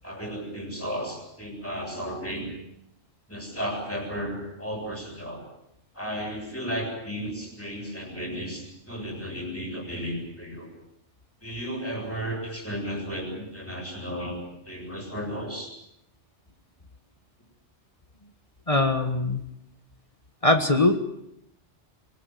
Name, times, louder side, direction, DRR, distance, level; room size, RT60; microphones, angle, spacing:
voice 1, 0.0-2.5 3.3-5.4 5.9-10.7 11.4-14.4 14.7-15.7, equal, 10° left, 0 dB, 7.8 m, -34 dB
voice 2, 18.7-19.4 20.4-21.0, left 2 dB, 30° left, 7 dB, 1.7 m, -21 dB
24.5 x 19.5 x 9.4 m, 0.78 s
omnidirectional pair, 1.2 m